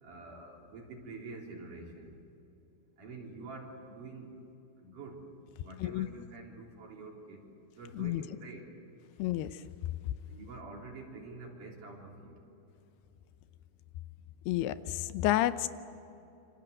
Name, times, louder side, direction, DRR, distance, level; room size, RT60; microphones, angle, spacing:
voice 1, 0.0-2.1 3.0-4.3 4.8-5.2 5.6-7.4 7.8-8.7 10.3-12.4, right 3 dB, 55° right, 0 dB, 5.0 m, -47 dB
voice 2, 14.5-15.7, left 14 dB, 90° left, 13 dB, 2.9 m, -30 dB
28.0 x 26.0 x 8.1 m, 2.9 s
omnidirectional pair, 4.5 m